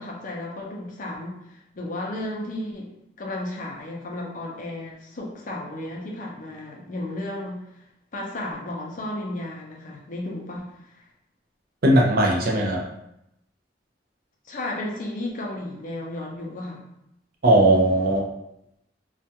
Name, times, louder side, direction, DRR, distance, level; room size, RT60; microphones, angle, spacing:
voice 1, 0.0-2.9 3.2-7.6 8.1-11.1 14.4-16.8, left 1 dB, 45° left, -1 dB, 0.5 m, -33 dB
voice 2, 11.8-12.8 17.4-18.3, right 1 dB, 55° right, -1 dB, 0.5 m, -18 dB
2.4 x 2.2 x 2.7 m, 0.81 s
head